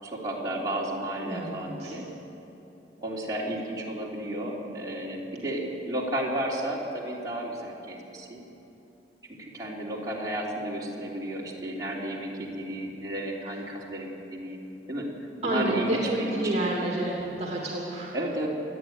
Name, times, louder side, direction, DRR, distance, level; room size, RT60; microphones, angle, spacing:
voice 1, 0.0-2.1 3.0-8.4 9.4-14.6 14.9-15.1 15.4-16.5 18.1-18.5, right 1 dB, 20° right, -5 dB, 3.5 m, -32 dB
voice 2, 1.2-1.9 15.4-18.1, right 1 dB, 40° right, -3 dB, 2.9 m, -29 dB
27.5 x 10.0 x 9.5 m, 2.9 s
head